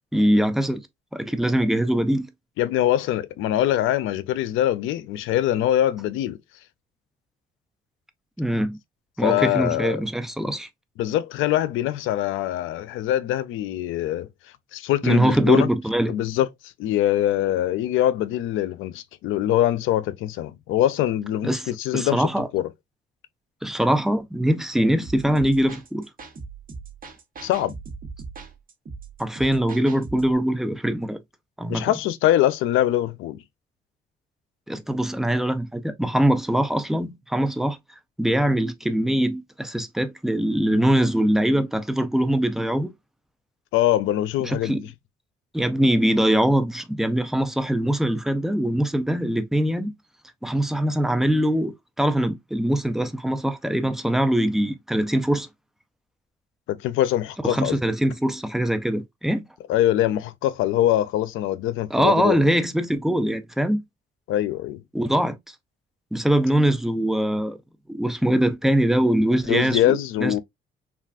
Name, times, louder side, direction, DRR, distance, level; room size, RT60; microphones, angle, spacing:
voice 1, 0.1-0.8 1.1-2.3 8.4-8.8 9.2-10.7 15.0-16.1 21.4-22.5 23.6-26.1 29.2-31.2 31.6-31.9 34.7-37.8 38.2-42.9 44.4-44.8 45.5-49.9 50.4-55.5 57.4-59.4 61.9-63.8 64.9-65.4 66.1-67.6 67.9-70.3, right 1 dB, ahead, 0.5 m, -22 dB
voice 2, 2.6-6.4 9.2-10.0 11.0-14.3 14.7-15.7 16.1-16.5 16.8-22.3 22.5-22.7 27.4-27.8 31.7-33.4 43.7-44.9 56.7-57.8 59.7-62.4 64.3-64.8 69.5-70.4, left 12 dB, 90° left, 0.4 m, -23 dB
sound 1, 25.0-30.3, right 4 dB, 45° right, 1.0 m, -40 dB
3.3 x 2.4 x 2.3 m
cardioid pair, 90°, 20 cm